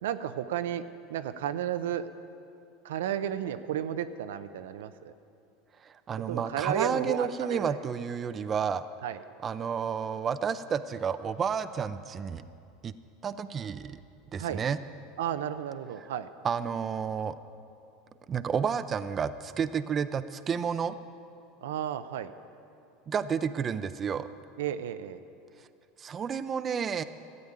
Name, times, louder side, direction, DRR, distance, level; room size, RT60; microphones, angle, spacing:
voice 1, 0.0-0.8 1.1-2.1 2.8-5.1 6.3-7.7 8.4-8.5 9.0-9.2 14.4-14.6 15.2-16.3 21.6-22.3 24.6-25.2, right 10 dB, 80° right, 10 dB, 0.6 m, -33 dB
voice 2, 5.8-8.9 9.4-12.4 12.8-13.0 13.2-14.0 14.3-14.8 16.0-16.1 16.4-17.4 18.3-21.0 23.1-24.3 26.0-27.0, right 7 dB, 30° right, 12 dB, 0.5 m, -31 dB
13.0 x 8.8 x 8.7 m, 2.6 s
hypercardioid pair, 100°, 0 cm